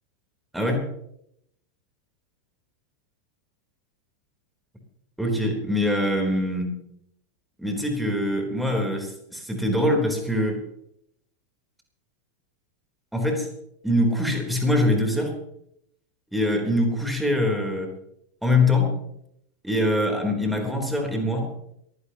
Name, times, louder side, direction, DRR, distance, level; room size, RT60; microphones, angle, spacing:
voice 1, 0.5-0.9 5.2-6.8 7.6-10.6 13.1-13.5 13.8-15.3 16.3-17.9 18.4-18.9 19.6-21.5, left 1 dB, ahead, 2 dB, 3.7 m, -23 dB
22.0 x 16.0 x 3.0 m, 0.75 s
figure-of-eight pair, 90°, 0 cm